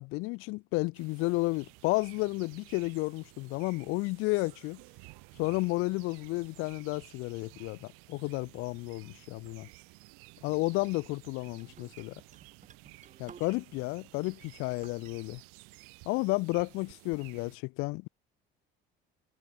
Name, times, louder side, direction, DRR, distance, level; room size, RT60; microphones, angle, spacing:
voice 1, 0.0-4.8 5.4-9.7 10.4-12.1 13.2-15.4 16.0-18.1, left 24 dB, 80° left, 1.2 m, -32 dB
sound 1, 0.9-17.6, right 35 dB, 90° right, 4.3 m, -54 dB
sound 2, 10.5-13.8 14.2-15.1, right 7 dB, 35° right, 7.4 m, -56 dB
cardioid pair, 105°, 21 cm